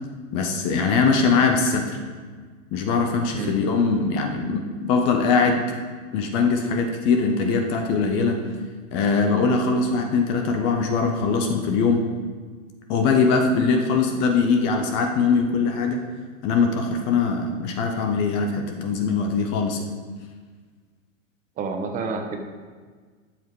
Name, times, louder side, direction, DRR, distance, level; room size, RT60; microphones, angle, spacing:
voice 1, 0.3-2.0 2.7-5.6 6.1-8.4 8.9-12.0 12.9-16.1 16.4-19.8, left 4 dB, 15° left, 4 dB, 0.3 m, -21 dB
voice 2, 3.3-3.7 21.6-22.4, right 4 dB, 20° right, 4 dB, 0.9 m, -29 dB
11.0 x 7.3 x 4.5 m, 1.5 s
hypercardioid pair, 145°, 40 cm